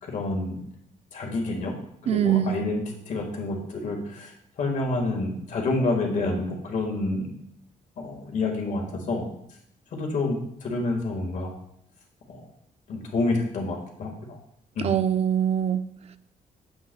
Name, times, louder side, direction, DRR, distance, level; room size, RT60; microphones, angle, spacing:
voice 1, 0.0-0.6 1.1-1.7 2.1-2.8 3.1-7.3 8.0-9.2 9.9-10.4 10.6-11.5 12.3-12.4 12.9-14.4 14.8-14.9, left 2 dB, 60° left, 1 dB, 1.7 m, -28 dB
voice 2, 2.1-2.7 14.8-15.9, right 9 dB, 45° right, 12 dB, 0.4 m, -23 dB
7.8 x 7.8 x 2.3 m, 0.72 s
cardioid pair, 125°, 15 cm